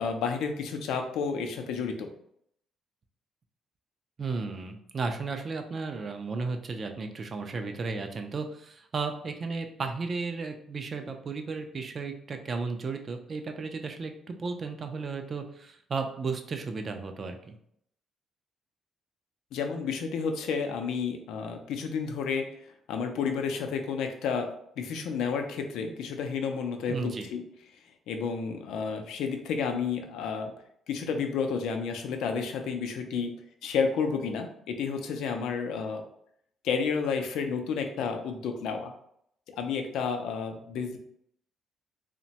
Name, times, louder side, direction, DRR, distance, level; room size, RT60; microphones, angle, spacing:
voice 1, 0.0-2.1 19.5-22.5 22.9-27.4 28.1-30.5 30.9-33.4 33.6-36.0 36.6-38.9 39.5-41.0, left 5 dB, 85° left, 5 dB, 0.4 m, -31 dB
voice 2, 4.2-17.5 26.9-27.3, right 4 dB, 35° right, 6 dB, 0.3 m, -34 dB
2.9 x 2.1 x 2.7 m, 0.71 s
cardioid pair, 145°, 0 cm